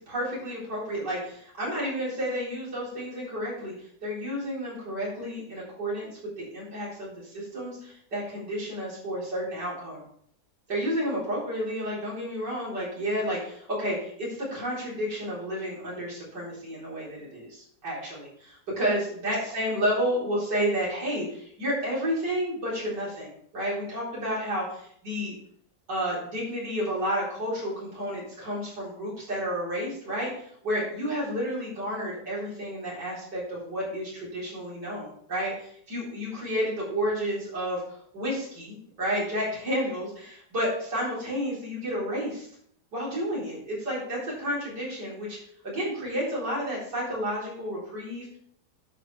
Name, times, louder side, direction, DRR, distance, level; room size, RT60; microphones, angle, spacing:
voice 1, 0.0-6.1 6.4-10.0 10.7-25.3 25.9-42.5 42.9-45.4 45.6-48.4, equal, 70° right, -6 dB, 4.6 m, -31 dB
9.9 x 7.7 x 3.3 m, 0.66 s
omnidirectional pair, 1.9 m